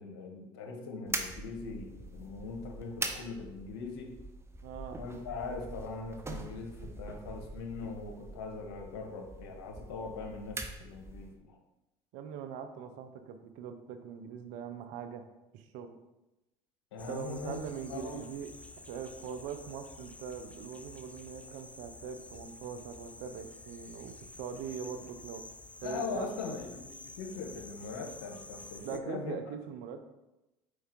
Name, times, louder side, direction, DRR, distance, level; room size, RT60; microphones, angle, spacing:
voice 1, 0.0-4.1 5.0-11.6 16.9-17.6 17.9-18.3 25.8-29.4, left 4 dB, 80° left, 3 dB, 1.1 m, -41 dB
sound 1, 1.1-11.4, right 2 dB, 20° right, 0.8 m, -43 dB
voice 2, 4.6-5.0 12.1-15.3 15.5-16.0 17.1-18.5 18.9-25.4 25.8-26.3 28.8-30.0, right 7 dB, 70° right, 8 dB, 0.7 m, -42 dB
sound 2, 17.0-29.0, left 2 dB, 10° left, 0.4 m, -50 dB
4.7 x 4.6 x 4.5 m, 0.95 s
hypercardioid pair, 75°, 13 cm